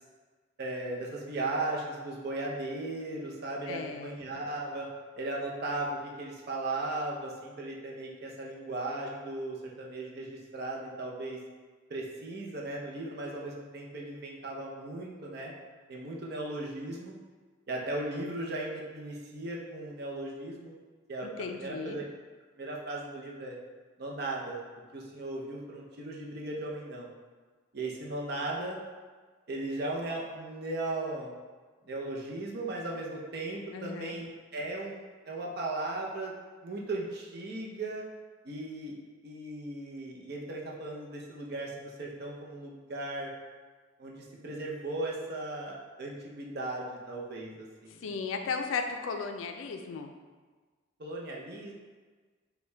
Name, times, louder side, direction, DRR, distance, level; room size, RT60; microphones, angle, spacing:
voice 1, 0.6-4.9 5.1-11.4 11.9-15.5 15.9-17.1 17.7-20.8 21.1-22.0 22.6-23.6 24.0-24.6 24.9-27.1 27.7-28.8 29.5-31.3 31.8-35.0 35.3-36.3 36.6-38.0 38.4-39.0 39.2-43.3 44.0-48.1 51.0-51.7, right 2 dB, 55° right, -2 dB, 0.6 m, -37 dB
voice 2, 3.7-4.2 21.2-22.0 33.7-34.2 48.0-50.1, left 5 dB, 80° left, 5 dB, 0.3 m, -35 dB
4.4 x 2.2 x 3.3 m, 1.4 s
head